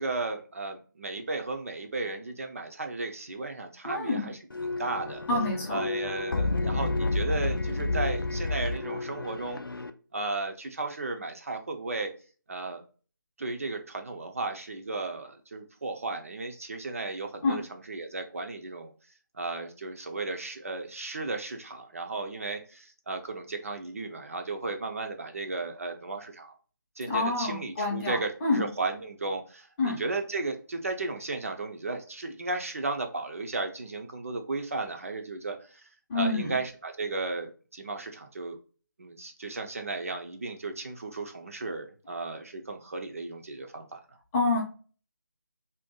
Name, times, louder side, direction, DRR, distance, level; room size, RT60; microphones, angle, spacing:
voice 1, 0.0-4.4 4.6-5.2 5.7-9.6 10.1-12.1 12.5-12.8 13.4-18.9 19.3-26.6 27.0-35.9 36.1-38.6 39.0-44.0, right 3 dB, 40° right, 4 dB, 0.4 m, -34 dB
voice 2, 3.8-4.3 5.3-5.8 17.4-17.6 27.1-28.7 29.8-30.0 36.1-36.5 44.3-44.6, left 2 dB, 10° left, -4 dB, 0.5 m, -27 dB
sound 1, 4.5-9.9, left 2 dB, 85° left, 0.4 m, -30 dB
2.6 x 2.2 x 3.6 m, 0.37 s
figure-of-eight pair, 155°, 11 cm